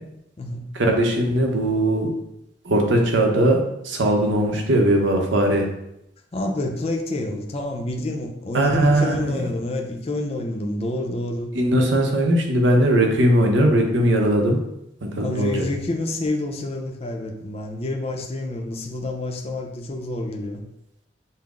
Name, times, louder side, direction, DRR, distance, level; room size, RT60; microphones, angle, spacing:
voice 1, 0.7-2.1 2.6-5.7 8.5-9.4 11.5-14.6 15.0-15.7, right 1 dB, 90° right, 2 dB, 0.8 m, -19 dB
voice 2, 6.3-11.5 15.2-20.6, left 2 dB, 35° left, 2 dB, 0.5 m, -28 dB
5.7 x 2.0 x 3.6 m, 0.83 s
head